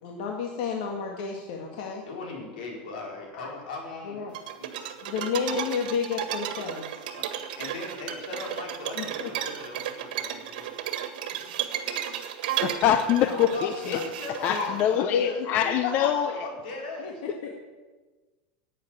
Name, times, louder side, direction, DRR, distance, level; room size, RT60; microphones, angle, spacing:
voice 1, 0.0-2.0 3.3-3.5 4.0-4.3 5.0-7.0 8.9-9.3 13.2-13.5 13.7-14.1 14.5-16.1 17.0-17.1 17.4-17.5, left 6 dB, 65° left, 1 dB, 1.8 m, -31 dB
voice 2, 2.1-4.7 7.1-10.7 13.5-15.4 16.2-17.2, left 3 dB, 85° left, -1 dB, 4.8 m, -39 dB
sound 1, 4.3-14.8, right 10 dB, 75° right, 1.7 m, -33 dB
voice 3, 12.6-14.0 14.4-16.3, left 10 dB, 35° left, 9 dB, 0.7 m, -24 dB
11.5 x 9.0 x 9.0 m, 1.3 s
supercardioid pair, 165°, 5 cm